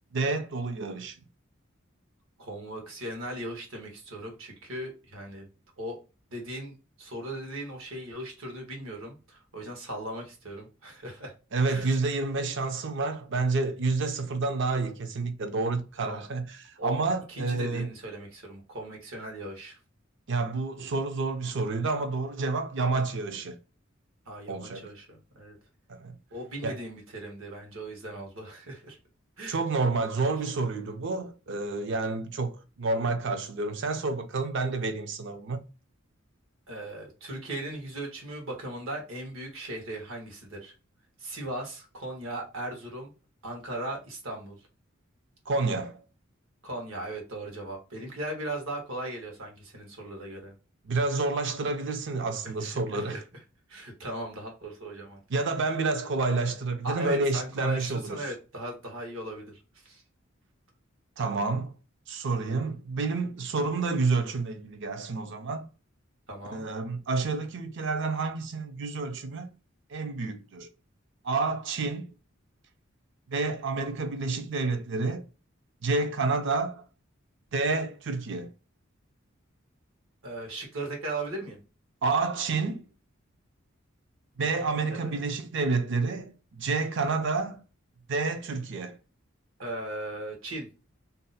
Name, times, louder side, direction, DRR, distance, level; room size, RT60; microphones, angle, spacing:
voice 1, 0.1-1.1 11.5-17.9 20.3-23.6 24.5-24.9 25.9-26.1 26.6-26.8 29.5-35.6 45.5-46.0 50.9-53.2 55.3-58.2 61.2-61.7 62.1-65.7 66.5-69.5 69.9-70.7 71.2-72.1 73.3-75.2 75.8-76.8 77.5-78.5 82.0-82.8 84.4-87.6 88.1-89.0, right 3 dB, 60° right, 0.5 m, -29 dB
voice 2, 2.4-5.5 5.8-6.0 6.3-11.3 11.7-11.9 16.0-16.2 16.8-17.0 17.3-19.8 24.3-25.5 26.3-29.0 29.4-29.6 36.7-40.7 41.2-43.1 43.4-44.6 46.6-50.5 52.6-53.2 53.7-55.2 56.8-60.0 66.3-66.6 80.2-81.6 84.9-85.1 89.6-90.7, right 1 dB, 85° right, 1.2 m, -38 dB
2.7 x 2.1 x 3.9 m
head